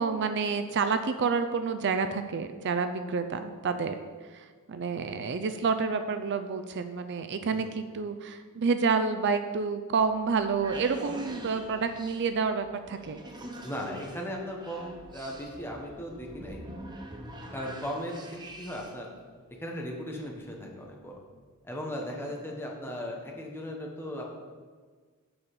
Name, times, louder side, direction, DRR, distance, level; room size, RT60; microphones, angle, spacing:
voice 1, 0.0-4.0 4.2-13.2, right 5 dB, 55° right, 9 dB, 0.5 m, -29 dB
sound 1, 10.2-19.1, right 1 dB, 20° right, 0.9 m, -45 dB
voice 2, 13.6-16.6 17.5-18.2 18.6-19.1 19.6-21.1 21.6-24.3, equal, 10° left, -1 dB, 1.3 m, -37 dB
7.0 x 5.5 x 6.8 m, 1.5 s
head